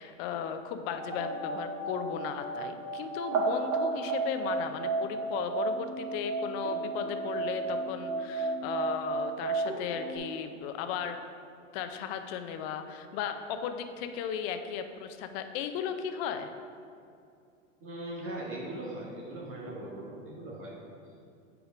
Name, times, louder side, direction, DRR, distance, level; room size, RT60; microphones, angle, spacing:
voice 1, 0.0-11.2 11.7-16.5, left 8 dB, 50° left, 8 dB, 0.7 m, -36 dB
sound 1, 0.9-10.2, right 3 dB, 55° right, 1.8 m, -33 dB
voice 2, 17.8-20.7, right 1 dB, 35° right, -3 dB, 1.8 m, -39 dB
7.9 x 5.1 x 5.0 m, 2.4 s
hypercardioid pair, 115°, 39 cm